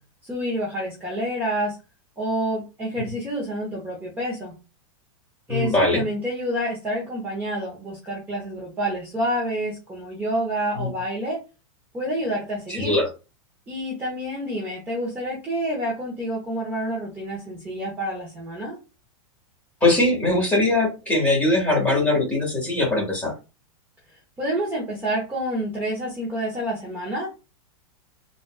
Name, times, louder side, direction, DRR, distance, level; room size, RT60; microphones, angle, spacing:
voice 1, 0.3-1.8 2.2-4.5 5.5-11.4 11.9-13.0 13.7-18.8 24.4-27.3, equal, 10° right, -5 dB, 1.0 m, -28 dB
voice 2, 5.5-6.0 10.8-10.9 12.7-13.1 19.8-23.4, left 2 dB, 10° left, -4 dB, 1.8 m, -21 dB
3.9 x 2.6 x 2.4 m, 0.29 s
supercardioid pair, 150°, 18 cm